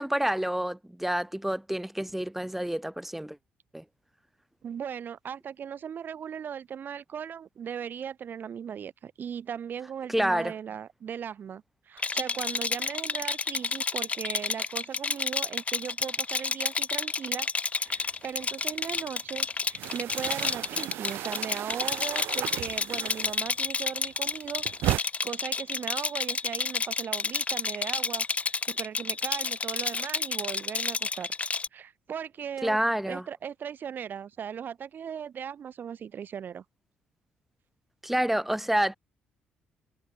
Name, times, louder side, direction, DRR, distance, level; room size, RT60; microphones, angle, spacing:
voice 1, 0.0-3.4 3.7-3.8 10.1-10.5 32.6-33.2 38.0-39.0, right 1 dB, 5° right, 4.9 m, -28 dB
voice 2, 4.6-17.5 17.8-24.6 25.0-31.3 31.7-32.8 33.1-36.6, right 8 dB, 55° right, 3.9 m, -38 dB
Rattle, 12.0-31.7, left 4 dB, 35° left, 2.1 m, -30 dB
sound 1, 18.0-19.0 19.3-23.7 24.0-25.0, right 15 dB, 75° right, 2.4 m, -35 dB
supercardioid pair, 60°, 4 cm